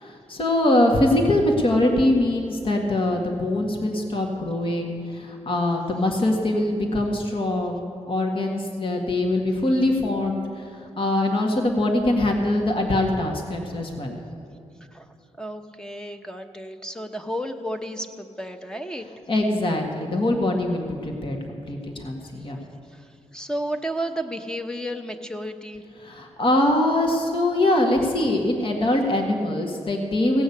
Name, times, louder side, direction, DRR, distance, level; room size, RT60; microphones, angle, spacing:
voice 1, 0.3-14.2 19.3-22.6 26.0-30.4, left 1 dB, 45° left, 2 dB, 1.7 m, -23 dB
voice 2, 15.4-19.0 22.9-25.8, equal, 5° left, 6 dB, 0.9 m, -32 dB
17.0 x 6.3 x 8.5 m, 2.5 s
cardioid pair, 85°, 12 cm